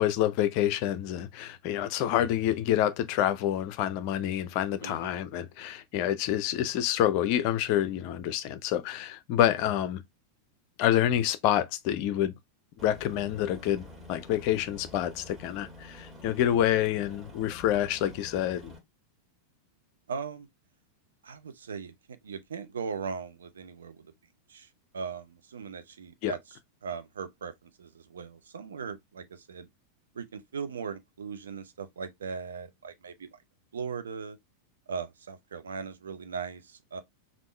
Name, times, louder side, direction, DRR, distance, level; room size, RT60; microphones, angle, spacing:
voice 1, 0.0-10.0 10.8-12.3 12.8-18.7 26.2-26.3, left 11 dB, 45° left, 0.4 m, -27 dB
voice 2, 4.8-5.1 20.1-20.5 21.2-24.1 24.5-24.7 24.9-29.7 30.1-33.4 33.7-34.4 34.9-37.0, right 5 dB, 65° right, 0.5 m, -39 dB
Aircraft, 12.8-18.8, left 2 dB, 15° right, 1.8 m, -48 dB
3.5 x 2.5 x 3.1 m
figure-of-eight pair, 90°, 0 cm